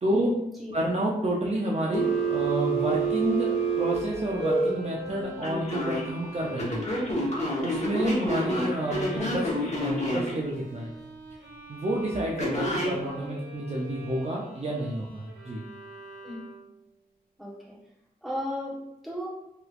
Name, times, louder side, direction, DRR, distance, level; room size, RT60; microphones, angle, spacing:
voice 1, 0.1-0.7 16.2-16.5 17.4-17.8 18.2-18.8 19.0-19.3, left 1 dB, ahead, -5 dB, 1.0 m, -35 dB
voice 2, 0.7-6.8 7.6-10.9 11.7-15.6, right 1 dB, 40° right, -3 dB, 0.5 m, -30 dB
Bowed string instrument, 1.6-16.8, equal, 85° right, 0.9 m, -45 dB
Telephone, 1.9-4.7 5.4-6.0 6.6-10.3 12.4-12.9, right 2 dB, 45° left, 0.9 m, -27 dB
3.1 x 2.9 x 2.4 m, 0.85 s
wide cardioid pair, 85°, 17 cm